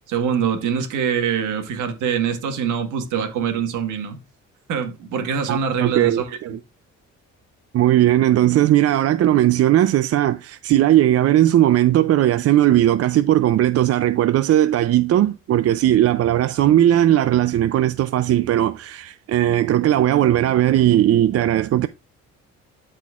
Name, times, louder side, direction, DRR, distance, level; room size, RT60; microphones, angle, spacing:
voice 1, 0.1-4.2 4.7-6.6, right 7 dB, 90° right, 1.6 m, -24 dB
voice 2, 5.5-6.6 7.7-21.9, right 12 dB, 55° right, 0.4 m, -17 dB
12.5 x 4.3 x 2.4 m
cardioid pair, 90°, 30 cm